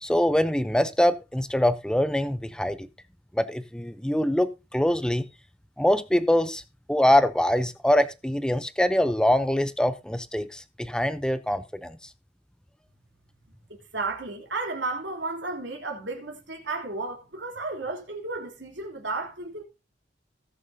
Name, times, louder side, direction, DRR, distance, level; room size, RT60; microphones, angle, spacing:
voice 1, 0.0-2.9 3.3-5.2 5.8-6.6 6.9-12.0, left 1 dB, 5° left, 0.6 m, -24 dB
voice 2, 13.7-19.6, right 3 dB, 70° right, 3.1 m, -33 dB
19.0 x 6.5 x 2.7 m
head